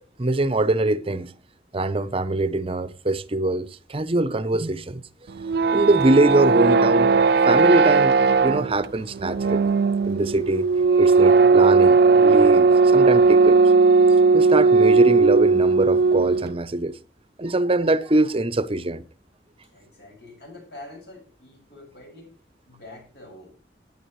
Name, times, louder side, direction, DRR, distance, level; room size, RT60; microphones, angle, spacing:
voice 1, 0.2-1.3 1.7-5.1 5.7-7.1 7.4-9.7 10.0-10.7 11.0-13.6 14.3-17.0 17.4-19.0, right 2 dB, 30° right, 0.7 m, -23 dB
sound 1, 5.3-16.5, right 4 dB, 65° right, 0.5 m, -17 dB
voice 2, 19.7-22.3 22.7-23.5, left 2 dB, 65° left, 6.5 m, -45 dB
17.0 x 9.9 x 3.2 m
head